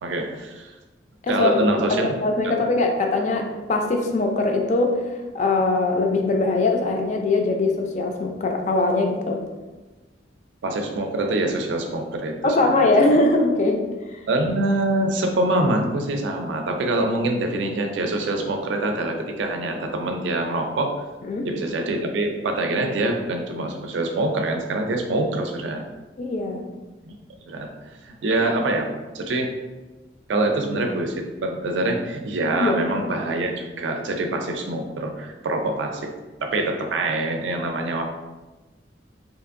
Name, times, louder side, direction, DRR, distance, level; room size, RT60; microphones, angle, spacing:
voice 1, 0.0-0.7 1.3-2.1 2.4-2.5 10.6-12.4 13.0-13.1 14.3-21.0 21.4-25.9 27.0-27.2 27.5-29.5 30.3-36.1 36.4-38.0, right 2 dB, 85° right, 4 dB, 0.4 m, -25 dB
voice 2, 1.2-1.6 1.9-9.4 12.4-14.2 21.2-21.5 26.2-26.6 32.6-32.7, left 2 dB, 40° left, 3 dB, 0.3 m, -22 dB
2.8 x 2.5 x 2.5 m, 1.2 s
head